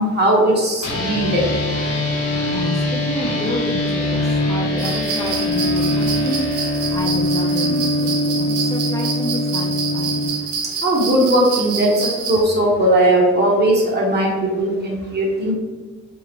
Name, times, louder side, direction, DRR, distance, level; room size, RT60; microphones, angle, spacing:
voice 1, 0.0-1.4 10.8-15.5, right 1 dB, 35° right, -2 dB, 1.0 m, -18 dB
sound 1, 0.8-10.3, left 1 dB, 80° left, 0.9 m, -22 dB
voice 2, 2.5-6.5 6.9-10.3, left 1 dB, 10° left, -3 dB, 0.4 m, -29 dB
sound 2, 4.8-12.4, right 5 dB, 90° right, 0.8 m, -27 dB
2.8 x 2.4 x 2.9 m, 1.4 s
cardioid pair, 90°, 30 cm